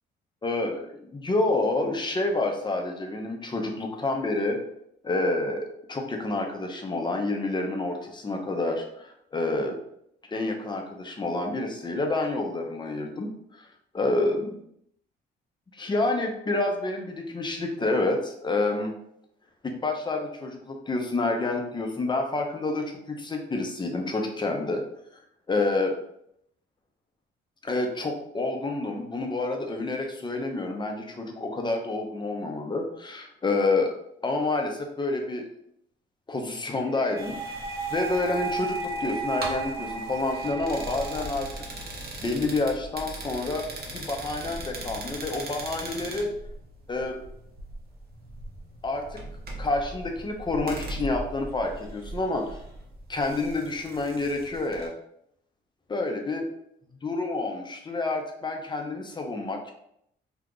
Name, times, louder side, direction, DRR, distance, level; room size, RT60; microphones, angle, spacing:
voice 1, 0.4-4.6 5.0-9.8 10.3-13.3 13.6-13.7 13.9-14.6 15.7-18.9 19.6-24.8 25.1-25.2 25.5-25.9 27.6-33.9 34.2-35.4 36.3-37.3 37.9-41.6 42.2-43.7 43.9-46.3 46.9-47.2 48.8-49.2 49.6-52.6 53.1-54.9 55.9-56.5 57.0-59.7, left 2 dB, 25° left, 3 dB, 0.7 m, -28 dB
sound 1, 36.8-41.8, right 3 dB, 20° right, 0.9 m, -34 dB
sound 2, 37.2-54.9, right 1 dB, 50° right, 0.9 m, -40 dB
2.9 x 2.3 x 3.7 m, 0.73 s
cardioid pair, 90°, 20 cm